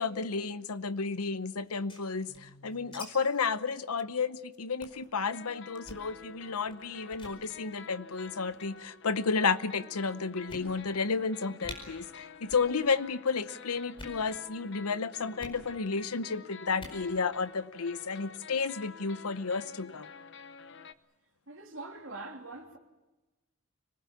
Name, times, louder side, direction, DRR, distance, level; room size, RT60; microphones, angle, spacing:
voice 1, 0.0-20.1, left 4 dB, 90° left, 0.9 m, -32 dB
sound 1, 1.6-3.1 3.3-3.4 3.7-3.9 4.2-4.4 4.8-5.1 5.7-6.1 6.7-6.8 7.1-7.4 8.3-8.7 9.4-9.5 9.9-10.0 10.5-11.0 11.3-11.4 11.6-11.8 12.4-12.7 13.0-13.4 13.8-14.2 15.4-15.6 16.7-17.0, left 2 dB, 25° left, 4.8 m, -46 dB
sound 2, 2.3-3.1 3.4-3.5 4.0-4.1 4.5-4.6 5.3-20.9, left 5 dB, 55° left, 0.9 m, -50 dB
voice 2, 21.5-22.8, right 2 dB, 65° right, 3.1 m, -43 dB
25.5 x 19.5 x 8.4 m
head